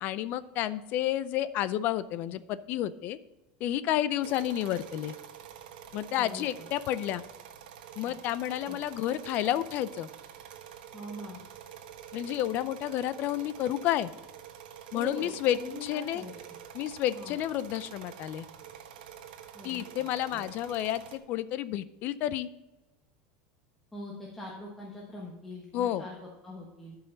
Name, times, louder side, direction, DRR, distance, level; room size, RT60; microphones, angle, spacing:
voice 1, 0.0-3.2 3.6-5.1 5.9-7.2 8.0-10.1 12.1-14.1 14.9-16.2 16.7-18.5 19.6-22.5 25.7-26.0, left 12 dB, 40° left, 16 dB, 0.5 m, -30 dB
sound 1, 4.2-21.2, right 9 dB, 85° right, 1.2 m, -47 dB
voice 2, 6.1-6.7 8.0-8.1 8.6-8.8 10.9-11.4 14.9-16.3 17.1-17.4 19.5-19.8 20.3-20.4 23.9-27.0, left 1 dB, 5° left, -3 dB, 1.2 m, -43 dB
12.0 x 5.7 x 4.0 m, 1.0 s
supercardioid pair, 160°, 5 cm